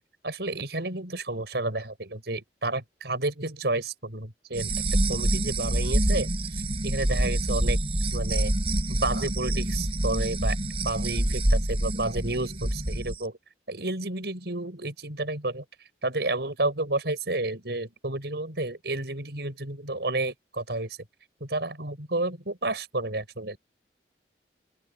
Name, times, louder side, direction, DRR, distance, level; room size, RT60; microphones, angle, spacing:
voice 1, 0.2-4.7 5.1-7.8 8.1-8.5 8.9-10.6 10.8-13.4 13.7-15.6 16.0-21.0 21.4-23.6, right 2 dB, 70° right, 5.5 m, -31 dB
sound 1, 4.5-13.2, right 1 dB, 35° right, 3.6 m, -26 dB
open air
head